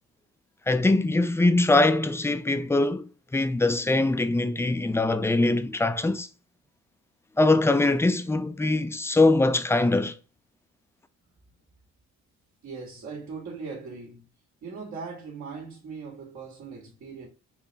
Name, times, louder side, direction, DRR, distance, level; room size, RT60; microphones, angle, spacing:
voice 1, 0.7-6.3 7.4-10.2, left 2 dB, 10° left, 0.5 m, -22 dB
voice 2, 12.6-14.3 14.6-17.3, right 5 dB, 65° right, 1.9 m, -39 dB
4.3 x 2.9 x 3.4 m
cardioid pair, 90°, 30 cm